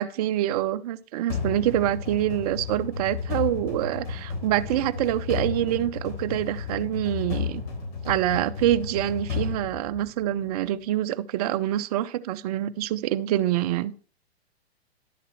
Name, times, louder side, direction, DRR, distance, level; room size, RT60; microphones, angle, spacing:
voice 1, 0.0-7.6 8.1-13.9, right 13 dB, 40° right, 0.6 m, -26 dB
sound 1, 1.3-10.5, left 5 dB, 50° left, 3.9 m, -33 dB
11.0 x 7.3 x 3.1 m
hypercardioid pair, 125°, 32 cm